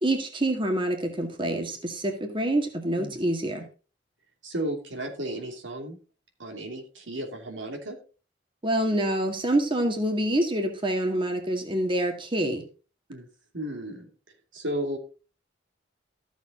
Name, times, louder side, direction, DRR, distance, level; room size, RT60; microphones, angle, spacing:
voice 1, 0.0-3.6 8.6-12.6, right 1 dB, 25° right, 4 dB, 1.9 m, -26 dB
voice 2, 4.4-6.0 6.4-8.0 13.1-13.3 13.5-14.1 14.5-15.0, right 1 dB, 90° right, 4 dB, 2.9 m, -34 dB
14.0 x 7.4 x 3.9 m, 0.35 s
head